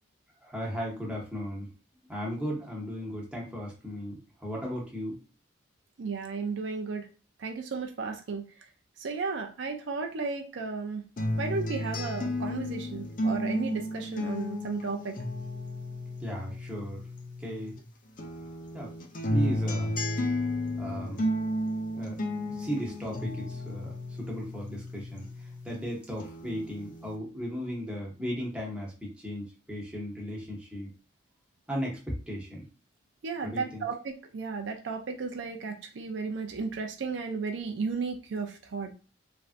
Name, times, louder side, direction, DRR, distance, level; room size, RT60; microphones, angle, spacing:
voice 1, 0.4-1.7 2.1-5.2 16.2-17.0 17.4-17.7 18.7-18.9 19.3-19.9 20.8-21.2 21.9-22.1 22.5-30.9 31.7-32.7 33.4-33.9, equal, 5° right, -3 dB, 0.8 m, -36 dB
voice 2, 6.0-7.1 7.4-8.4 9.0-11.0 11.4-15.2 33.2-38.9, right 4 dB, 65° right, 4 dB, 0.4 m, -34 dB
sound 1, 11.2-17.8 18.2-25.8 26.2-27.2, left 1 dB, 40° left, 0.5 m, -33 dB
3.2 x 2.6 x 2.5 m, 0.34 s
head